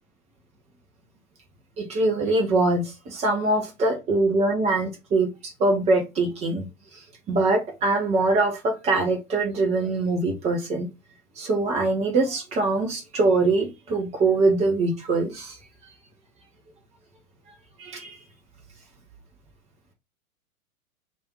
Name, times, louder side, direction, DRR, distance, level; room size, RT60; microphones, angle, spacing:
voice 1, 1.8-6.7 7.3-10.9 11.4-15.6 17.8-18.2, right 2 dB, 15° right, 0.8 m, -23 dB
3.3 x 2.7 x 4.4 m
figure-of-eight pair, 110°, 44 cm